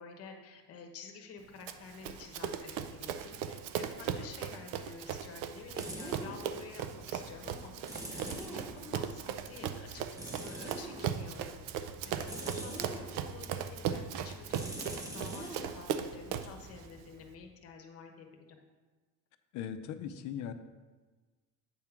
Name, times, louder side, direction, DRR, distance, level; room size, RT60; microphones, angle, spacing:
voice 1, 0.0-7.7 8.1-11.6 12.0-18.3, left 5 dB, 45° left, 4 dB, 1.0 m, -50 dB
Run, 1.7-16.6, right 8 dB, 85° right, 0.6 m, -38 dB
sound 1, 5.0-17.5, right 1 dB, 10° right, 0.7 m, -46 dB
voice 2, 19.5-20.5, left 9 dB, 65° left, 8 dB, 0.6 m, -39 dB
8.5 x 3.7 x 5.8 m, 1.3 s
cardioid pair, 155°, 32 cm